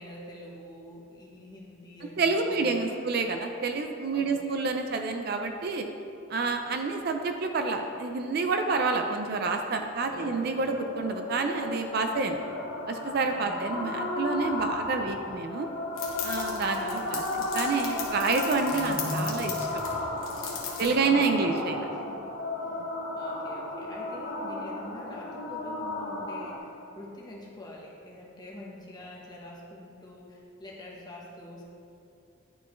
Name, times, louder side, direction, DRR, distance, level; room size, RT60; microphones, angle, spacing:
voice 1, 0.0-3.1 4.1-4.6 10.0-10.6 13.3-13.8 16.7-17.3 20.7-21.5 21.9-22.2 22.6-22.8 23.1-31.7, left 1 dB, 20° left, -3 dB, 0.9 m, -46 dB
voice 2, 2.2-5.9 6.3-12.4 12.9-15.7 16.2-19.7 20.8-21.8, right 4 dB, 50° right, 5 dB, 0.4 m, -28 dB
sound 1, 10.0-26.6, left 2 dB, 70° left, 0.9 m, -34 dB
sound 2, 16.0-20.9, left 6 dB, 90° left, 1.2 m, -38 dB
10.5 x 4.5 x 3.1 m, 2.7 s
head